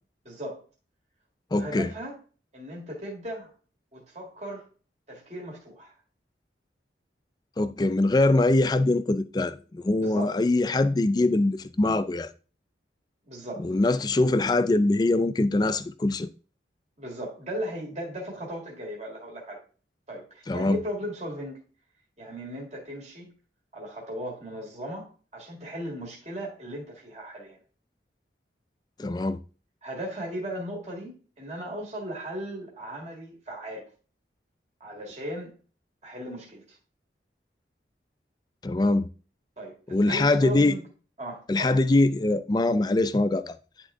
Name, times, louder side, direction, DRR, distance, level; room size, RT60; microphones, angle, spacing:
voice 1, 0.3-0.6 1.5-2.2 2.5-3.5 3.9-4.6 5.1-5.9 10.0-10.4 13.3-13.7 17.0-19.6 20.1-21.6 22.2-23.3 23.7-27.6 29.8-33.8 34.8-35.5 36.0-36.6 39.6-40.8 41.2-41.7, right 1 dB, 35° right, 1.9 m, -37 dB
voice 2, 1.5-1.9 7.6-12.3 13.6-16.3 20.5-20.8 29.0-29.4 38.6-39.1 39.9-40.7 41.5-43.6, left 2 dB, 20° left, 0.3 m, -23 dB
10.0 x 3.6 x 3.7 m
head